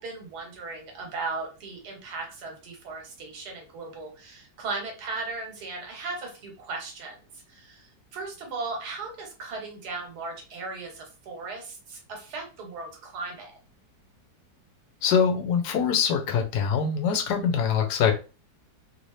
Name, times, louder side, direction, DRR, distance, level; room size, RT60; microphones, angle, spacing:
voice 1, 0.0-13.5, right 3 dB, 70° right, 2 dB, 1.5 m, -37 dB
voice 2, 15.0-18.1, left 7 dB, 75° left, 5 dB, 1.2 m, -23 dB
3.1 x 2.7 x 3.1 m, 0.32 s
omnidirectional pair, 1.8 m